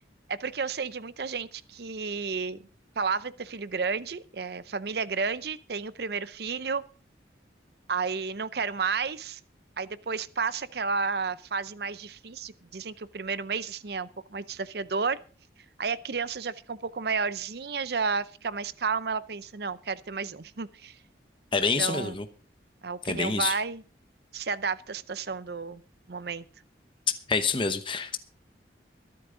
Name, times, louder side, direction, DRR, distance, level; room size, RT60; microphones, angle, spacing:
voice 1, 0.3-2.6 3.0-6.8 7.9-9.4 9.8-15.2 15.8-21.0 21.8-22.2 22.8-23.8 24.3-25.8 26.1-26.4, right 5 dB, 55° right, 17 dB, 0.6 m, -32 dB
voice 2, 21.5-22.2 23.1-23.5 27.3-28.2, left 4 dB, 25° left, 8 dB, 0.9 m, -27 dB
23.5 x 8.5 x 3.8 m, 0.38 s
head